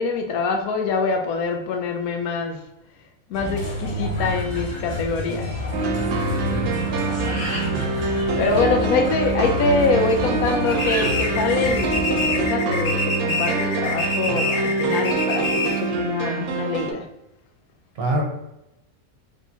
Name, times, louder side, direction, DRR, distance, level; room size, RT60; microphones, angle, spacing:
voice 1, 0.0-2.6 3.3-5.6 7.3-7.4 8.4-17.0, left 4 dB, 85° left, 4 dB, 1.1 m, -24 dB
sound 1, 3.3-12.4, left 1 dB, 40° left, 0.7 m, -29 dB
sound 2, 5.7-16.9, right 3 dB, 90° right, 1.1 m, -25 dB
voice 2, 6.5-6.8 7.1-7.9 17.9-18.2, right 2 dB, 45° right, 0 dB, 1.1 m, -28 dB
sound 3, 10.7-15.9, left 2 dB, 65° left, 0.3 m, -27 dB
4.4 x 3.5 x 2.7 m, 0.94 s
omnidirectional pair, 1.5 m